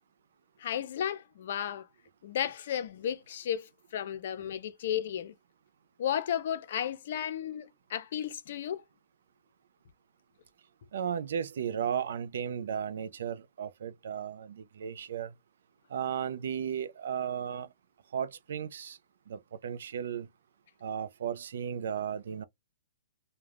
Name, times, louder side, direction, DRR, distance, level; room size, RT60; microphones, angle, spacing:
voice 1, 0.6-1.9 2.2-5.3 6.0-8.8, left 9 dB, 60° left, 0.5 m, -34 dB
voice 2, 10.9-15.3 15.9-17.7 18.1-19.0 19.3-20.3 20.8-22.4, right 8 dB, 70° right, 0.3 m, -35 dB
2.3 x 2.2 x 3.3 m
hypercardioid pair, 155°, 0 cm